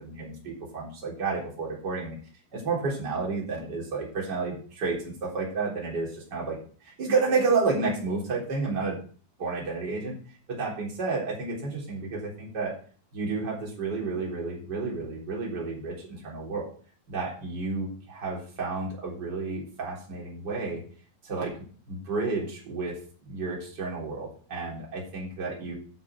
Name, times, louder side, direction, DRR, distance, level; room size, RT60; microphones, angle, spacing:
voice 1, 0.0-2.1 2.5-6.6 6.8-9.0 9.4-10.2 10.5-12.8 13.1-16.7 17.1-20.8 21.2-23.0 23.2-25.8, right 4 dB, 25° right, -4 dB, 3.8 m, -31 dB
10.5 x 7.0 x 6.0 m, 0.44 s
omnidirectional pair, 4.9 m